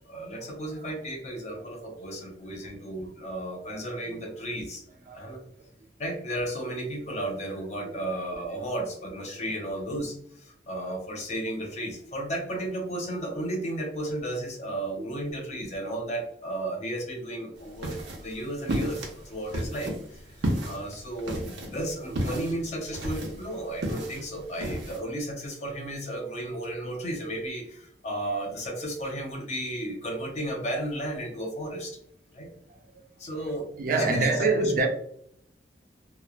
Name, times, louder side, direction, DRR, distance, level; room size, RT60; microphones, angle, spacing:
voice 1, 0.0-4.8 5.1-5.4 6.0-20.2 20.6-32.0 32.3-32.5 33.2-33.7 34.0-34.7, right 1 dB, 40° left, 0.6 m, -34 dB
voice 2, 2.6-2.9 4.1-4.2 5.1-5.2 7.9-8.0 15.0-15.1 33.8-34.9, right 3 dB, 50° right, 0.4 m, -27 dB
sound 1, 17.6-25.0, right 1 dB, 85° right, 0.7 m, -33 dB
3.0 x 2.0 x 2.3 m
head